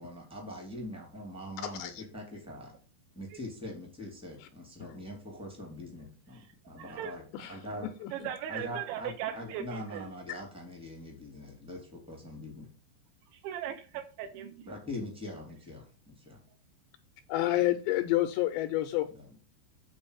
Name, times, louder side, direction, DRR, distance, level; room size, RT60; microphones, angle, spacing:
voice 1, 0.0-2.7 3.1-7.2 7.5-7.9 8.5-12.7 14.7-16.4 19.1-19.4, left 1 dB, 5° right, 1 dB, 1.0 m, -43 dB
voice 2, 1.6-2.0 4.4-4.5 7.3-7.5 8.0-8.1 10.3-10.4 17.3-19.1, left 15 dB, 85° left, 8 dB, 2.5 m, -29 dB
voice 3, 6.8-7.1 8.1-10.1 13.4-14.7, right 10 dB, 80° right, 7 dB, 3.2 m, -38 dB
8.6 x 4.2 x 6.6 m, 0.36 s
omnidirectional pair, 5.4 m